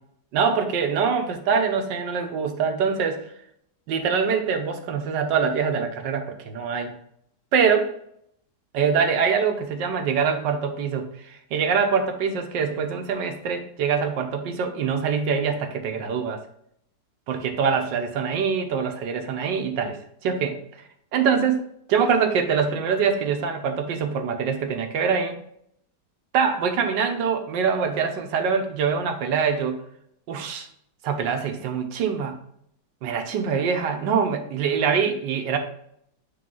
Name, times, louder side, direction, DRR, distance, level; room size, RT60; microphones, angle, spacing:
voice 1, 0.3-3.2 3.9-6.9 7.5-7.9 8.7-16.4 17.3-20.6 21.1-25.4 26.3-29.8 30.3-30.7 31.0-32.4 33.0-35.6, right 6 dB, 85° right, 5 dB, 1.6 m, -24 dB
8.5 x 3.4 x 3.8 m, 0.70 s
omnidirectional pair, 1.9 m